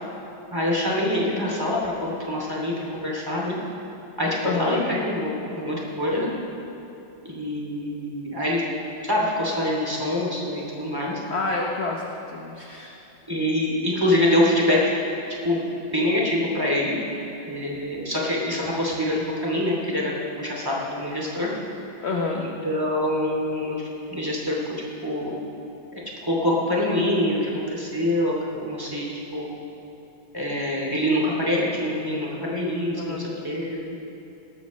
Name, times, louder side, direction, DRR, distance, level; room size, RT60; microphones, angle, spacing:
voice 1, 0.5-3.5 4.2-6.3 7.2-8.6 9.0-11.1 13.3-14.9 15.4-17.0 17.5-21.5 22.3-24.6 25.0-25.3 25.9-29.5 30.3-34.0, left 1 dB, 10° right, -4 dB, 2.5 m, -25 dB
voice 2, 4.4-4.9 11.3-12.9 22.0-22.5 33.0-33.3, left 3 dB, 50° left, 0 dB, 0.9 m, -28 dB
19.0 x 13.5 x 3.1 m, 2.9 s
omnidirectional pair, 1.9 m